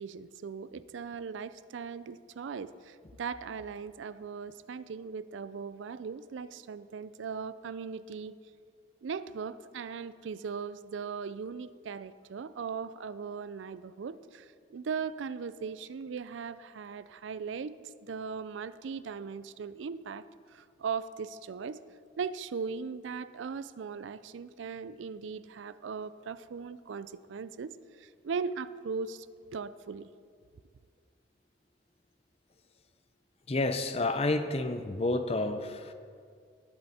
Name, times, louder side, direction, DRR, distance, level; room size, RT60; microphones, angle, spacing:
voice 1, 0.0-8.4 9.0-21.8 22.2-29.3 29.5-30.1, right 5 dB, 80° right, 16 dB, 0.4 m, -39 dB
voice 2, 33.5-35.9, left 2 dB, 30° left, 10 dB, 0.6 m, -30 dB
19.0 x 7.7 x 4.2 m, 2.2 s
head